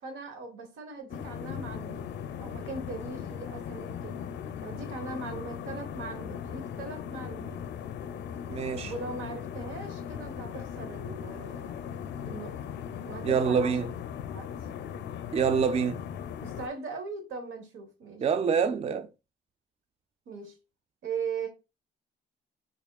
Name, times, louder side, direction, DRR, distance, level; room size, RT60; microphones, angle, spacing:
voice 1, 0.0-2.1 2.4-4.2 4.6-7.6 8.8-11.8 12.2-12.7 13.0-13.8 14.3-14.5 16.4-18.2 20.3-20.5 21.0-21.5, right 4 dB, 85° right, 1.1 m, -39 dB
sound 1, 1.1-16.7, left 8 dB, 65° left, 0.4 m, -38 dB
voice 2, 8.5-8.9 13.2-13.9 15.3-16.0 18.2-19.1, right 6 dB, 30° right, 0.4 m, -26 dB
3.5 x 3.5 x 2.2 m
cardioid pair, 90°, 20 cm